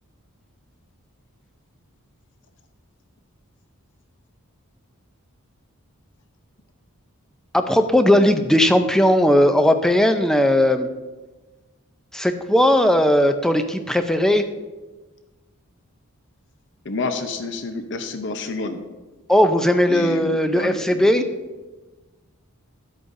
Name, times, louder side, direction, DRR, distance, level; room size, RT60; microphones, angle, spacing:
voice 1, 7.5-10.9 12.1-14.4 19.3-21.2, left 1 dB, ahead, 7 dB, 0.4 m, -17 dB
voice 2, 16.8-18.8 19.9-21.0, left 3 dB, 55° left, 7 dB, 0.7 m, -29 dB
12.5 x 8.6 x 2.6 m, 1.2 s
head